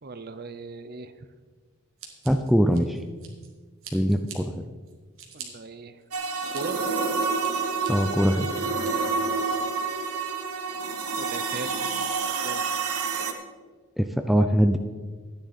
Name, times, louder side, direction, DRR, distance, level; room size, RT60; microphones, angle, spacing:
voice 1, 0.0-1.3 5.3-6.0 6.5-6.8 11.2-11.9 12.2-12.6, right 3 dB, 45° right, 12 dB, 0.6 m, -39 dB
Scissors, 2.0-3.5 3.8-4.4 4.9-5.5 6.0-6.6 7.1-7.9 8.4-8.9, right 7 dB, 65° right, 2.0 m, -44 dB
voice 2, 2.3-3.0 3.9-4.6 7.9-8.5 14.0-14.8, equal, ahead, 6 dB, 0.4 m, -22 dB
sound 1, 6.1-13.3, right 4 dB, 85° right, 1.1 m, -28 dB
13.0 x 9.8 x 4.1 m, 1.4 s
head